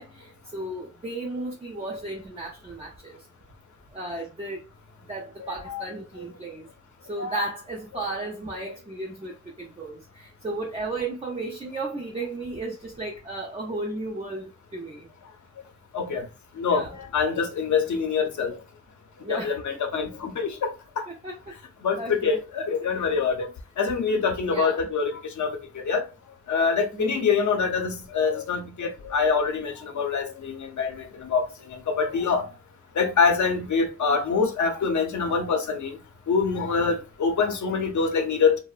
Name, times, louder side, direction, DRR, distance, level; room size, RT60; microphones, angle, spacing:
voice 1, 0.0-3.2 3.9-4.6 5.1-6.7 7.1-15.1 16.7-16.9 19.2-19.6 21.1-21.4 22.0-22.4 22.8-23.1 24.5-24.8 26.9-27.3, right 2 dB, 20° right, 0.4 m, -34 dB
voice 2, 5.4-5.8 7.2-7.4 8.5-8.6 15.9-16.2 16.6-18.6 19.3-20.7 21.0-21.1 21.8-23.5 23.8-26.0 26.5-32.4 33.0-36.0 36.3-38.6, left 5 dB, 80° left, 0.6 m, -25 dB
2.9 x 2.0 x 2.3 m
wide cardioid pair, 145°, 29 cm